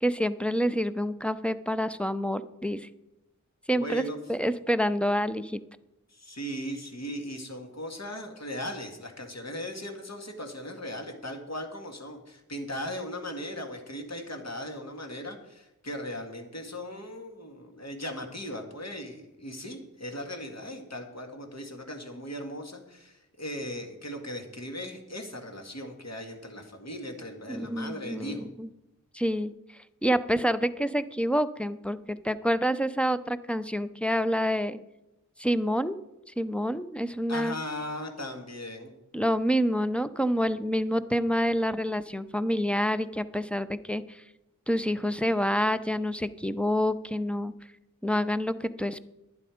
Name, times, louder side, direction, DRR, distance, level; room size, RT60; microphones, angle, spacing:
voice 1, 0.0-2.9 3.7-4.0 4.3-5.6 27.5-28.7 29.1-29.5 30.0-34.8 35.4-36.0 36.4-37.6 39.1-44.2 44.7-47.5 48.0-49.0, equal, 5° left, 11 dB, 0.5 m, -27 dB
voice 2, 3.8-4.2 6.1-28.5 37.3-38.9, left 1 dB, 50° left, 3 dB, 2.0 m, -38 dB
11.5 x 9.6 x 5.0 m, 0.93 s
wide cardioid pair, 55°, 33 cm